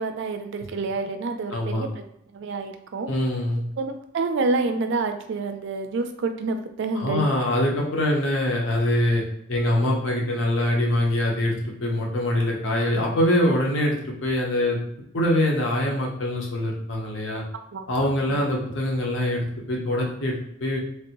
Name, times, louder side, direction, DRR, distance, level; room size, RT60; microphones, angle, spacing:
voice 1, 0.0-2.0 2.3-3.1 3.8-7.3 17.7-18.4, right 3 dB, 60° right, 6 dB, 0.4 m, -28 dB
voice 2, 1.5-1.9 3.1-3.6 7.0-9.2 9.5-14.8 15.1-17.4 17.9-20.8, left 1 dB, 60° left, -1 dB, 0.8 m, -24 dB
3.2 x 2.6 x 2.9 m, 0.76 s
head